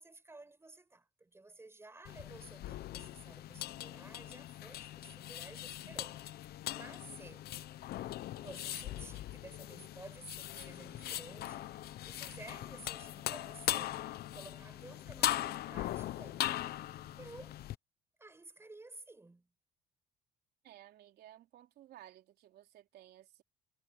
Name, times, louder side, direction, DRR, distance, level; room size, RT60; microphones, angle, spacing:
voice 1, 0.0-6.2 6.6-7.5 8.4-11.8 12.1-16.5 17.2-17.6 18.2-19.5, right 2 dB, 15° right, 5.1 m, -53 dB
sound 1, 2.0-17.7, left 14 dB, 70° left, 0.8 m, -40 dB
sound 2, 9.8-17.7, left 2 dB, 15° left, 6.2 m, -64 dB
voice 2, 20.6-23.4, right 13 dB, 70° right, 3.7 m, -57 dB
cardioid pair, 110°, 17 cm